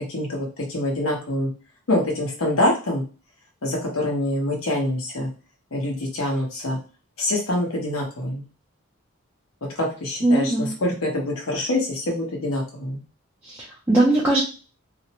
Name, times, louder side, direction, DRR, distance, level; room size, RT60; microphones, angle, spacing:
voice 1, 0.0-1.5 1.9-3.0 3.6-5.3 5.7-6.8 7.2-8.4 9.8-13.0, left 1 dB, 75° left, -1 dB, 0.9 m, -25 dB
voice 2, 10.2-10.7 13.4-14.4, right 2 dB, 10° right, -6 dB, 0.4 m, -20 dB
2.5 x 2.1 x 2.8 m, 0.35 s
head